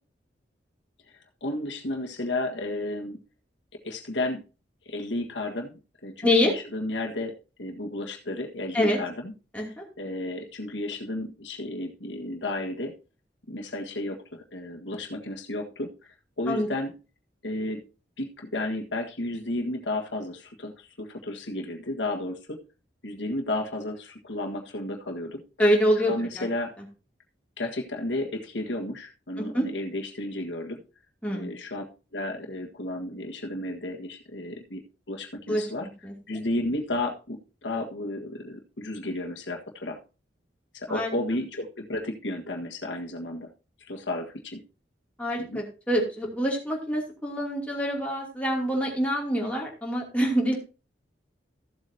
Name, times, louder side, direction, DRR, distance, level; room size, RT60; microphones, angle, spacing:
voice 1, 1.4-3.2 3.8-4.4 4.8-7.3 7.6-9.3 9.7-12.9 13.5-15.9 16.4-16.9 17.4-17.8 18.2-22.6 23.0-25.4 26.1-26.7 27.6-30.8 31.3-31.8 32.1-35.9 36.3-40.0 40.7-43.5 43.9-44.6 45.4-45.6, left 1 dB, 85° left, 1 dB, 1.6 m, -33 dB
voice 2, 9.5-9.8 16.5-16.7 25.6-26.5 29.4-29.7 31.2-31.5 35.5-35.6 36.0-36.1 40.9-41.1 45.2-50.6, equal, 10° left, -2 dB, 2.7 m, -25 dB
14.5 x 7.7 x 2.8 m, 0.32 s
head